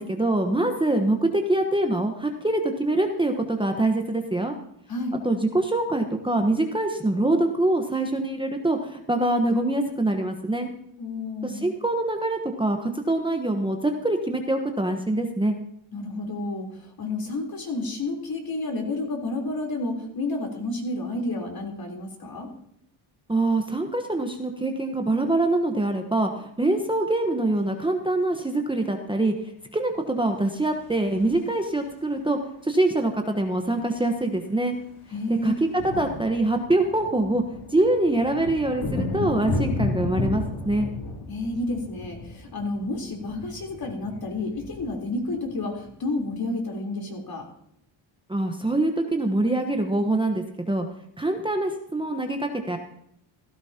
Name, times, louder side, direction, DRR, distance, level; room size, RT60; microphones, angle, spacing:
voice 1, 0.0-4.5 5.2-10.7 11.4-15.5 23.3-29.3 29.7-32.4 32.6-34.8 35.4-35.5 35.8-37.4 37.7-40.9 48.3-50.9 51.2-52.8, right 2 dB, 10° right, 4 dB, 1.2 m, -24 dB
voice 2, 4.9-5.2 11.0-11.7 15.9-16.7 17.0-22.5 35.1-35.5 41.3-47.5, left 2 dB, 45° left, 1 dB, 3.8 m, -30 dB
sound 1, 30.6-32.1 33.5-33.6 33.7-34.0 34.3-46.3, left 3 dB, 80° left, 3.5 m, -34 dB
16.0 x 13.5 x 2.9 m, 0.75 s
supercardioid pair, 70°, 48 cm